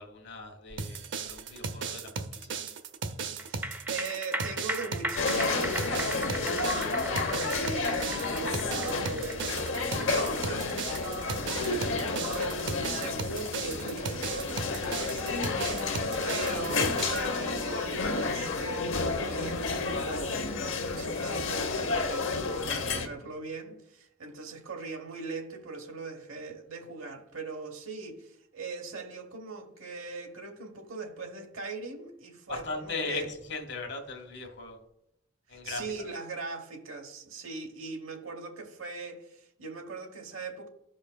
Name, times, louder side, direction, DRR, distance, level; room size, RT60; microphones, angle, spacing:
voice 1, 0.0-2.6 32.5-34.8 35.5-35.9, left 3 dB, 55° left, 1.2 m, -38 dB
sound 1, 0.8-17.3, right 5 dB, 65° right, 0.6 m, -36 dB
sound 2, 3.4-16.0 16.4-16.5, right 1 dB, 10° right, 0.3 m, -39 dB
voice 2, 3.4-7.2 7.5-10.7 11.4-15.9 16.2-33.3 35.6-40.7, right 3 dB, 85° right, 1.1 m, -40 dB
sound 3, 5.2-23.1, left 3 dB, 70° left, 0.8 m, -31 dB
14.0 x 5.2 x 2.2 m
head